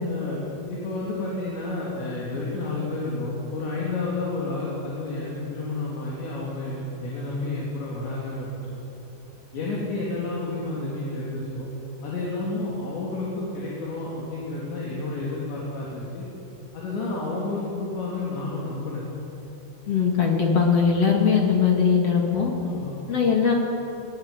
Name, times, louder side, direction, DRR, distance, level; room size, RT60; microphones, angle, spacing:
voice 1, 0.1-0.4 0.7-8.5 9.5-11.7 12.0-16.3 16.7-19.0 22.6-22.9, left 2 dB, 70° left, -5 dB, 5.5 m, -30 dB
voice 2, 19.9-22.5 23.1-23.5, left 6 dB, 40° left, 0 dB, 2.7 m, -20 dB
20.5 x 19.0 x 9.2 m, 3.0 s
omnidirectional pair, 5.4 m